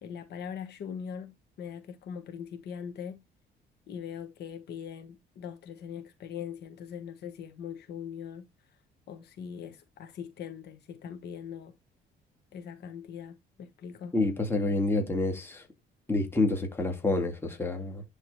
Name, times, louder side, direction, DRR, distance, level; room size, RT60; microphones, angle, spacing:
voice 1, 0.0-3.2 3.9-8.5 9.1-11.7 12.5-14.1, left 7 dB, 65° left, 1.3 m, -41 dB
voice 2, 14.1-15.7 16.1-18.0, left 2 dB, 10° left, 2.0 m, -28 dB
10.5 x 3.8 x 3.2 m
cardioid pair, 140°, 18 cm